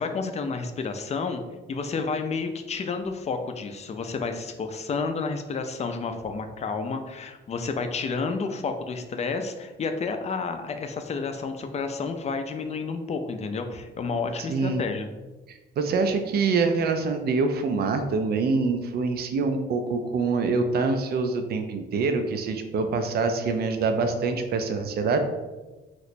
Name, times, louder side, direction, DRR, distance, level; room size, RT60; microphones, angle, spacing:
voice 1, 0.0-1.4 1.7-15.1, left 4 dB, 35° left, 6 dB, 0.4 m, -30 dB
voice 2, 14.5-14.8 15.5-25.2, right 4 dB, 50° right, 7 dB, 0.4 m, -25 dB
3.0 x 2.1 x 4.1 m, 1.2 s
cardioid pair, 90°, 20 cm